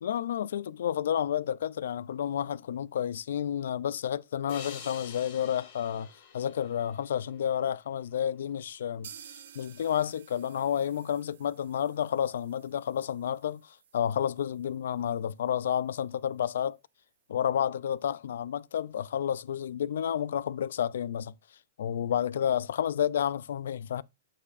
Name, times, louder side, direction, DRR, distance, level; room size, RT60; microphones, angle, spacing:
voice 1, 0.0-9.1 9.6-16.8 17.3-21.3 21.8-24.0, left 9 dB, 75° left, 0.3 m, -30 dB
sound 1, 4.5-7.8, left 7 dB, 40° left, 1.7 m, -47 dB
sound 2, 9.0-16.8 17.1-17.2 17.5-17.6 18.0-18.1, right 8 dB, 75° right, 0.7 m, -54 dB
8.5 x 4.9 x 2.5 m
supercardioid pair, 180°, 0 cm